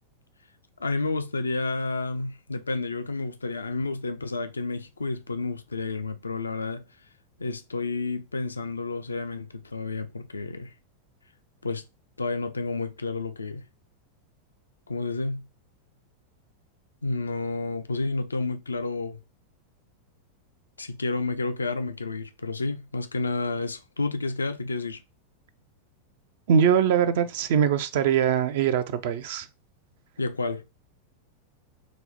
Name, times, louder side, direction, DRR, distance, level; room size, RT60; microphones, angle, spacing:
voice 1, 0.8-6.8 7.4-10.7 11.6-11.8 12.2-13.6 14.9-15.5 17.0-19.2 20.8-25.0 30.2-30.6, left 3 dB, 75° left, 0.3 m, -30 dB
voice 2, 26.5-29.5, right 8 dB, 55° right, 0.3 m, -22 dB
4.1 x 2.0 x 2.7 m
figure-of-eight pair, 90°, 0 cm